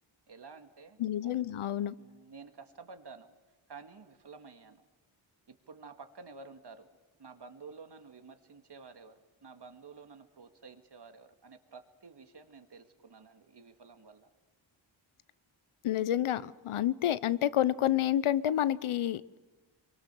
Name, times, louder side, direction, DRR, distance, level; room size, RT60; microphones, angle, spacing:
voice 1, 0.3-1.3 2.0-3.3 3.7-4.9 5.5-6.9 7.2-14.3, right 4 dB, 55° right, 7 dB, 2.1 m, -51 dB
voice 2, 1.0-1.9 15.8-19.4, left 11 dB, 90° left, 17 dB, 0.8 m, -29 dB
25.0 x 23.5 x 6.9 m, 1.2 s
cardioid pair, 60°, 48 cm